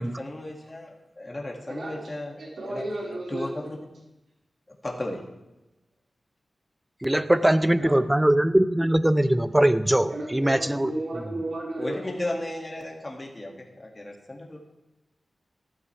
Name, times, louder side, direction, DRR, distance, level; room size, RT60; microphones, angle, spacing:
voice 1, 0.0-2.4 2.7-3.8 4.8-5.2 11.8-14.6, left 1 dB, 25° left, -1 dB, 2.2 m, -35 dB
voice 2, 1.7-2.0 2.4-3.5 7.8-8.1 10.1-11.9, right 1 dB, 85° right, -6 dB, 5.0 m, -34 dB
voice 3, 7.0-10.9, right 1 dB, 10° right, 13 dB, 0.5 m, -21 dB
13.5 x 12.5 x 3.4 m, 0.97 s
wide cardioid pair, 105°, 0 cm